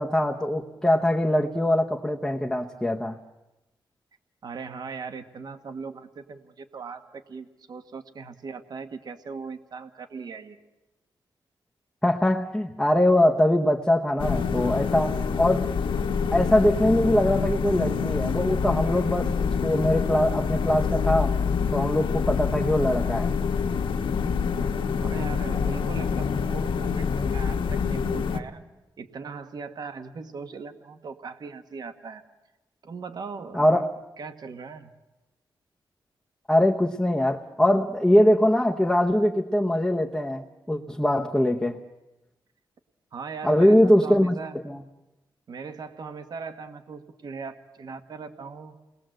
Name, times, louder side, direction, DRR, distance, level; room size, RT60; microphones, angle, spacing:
voice 1, 0.0-3.2 12.0-15.7 16.3-21.4 21.7-23.3 33.5-33.9 36.5-41.8 43.4-44.4 44.6-44.8, left 1 dB, 5° left, 0 dB, 0.9 m, -22 dB
voice 2, 4.4-10.6 25.0-28.6 29.0-32.2 32.8-33.8 34.2-34.9 43.1-44.6 45.5-48.7, right 5 dB, 55° right, 9 dB, 1.4 m, -39 dB
sound 1, 14.2-28.4, left 6 dB, 85° left, 1.5 m, -26 dB
29.0 x 20.5 x 7.8 m, 1.0 s
wide cardioid pair, 175°, 8 cm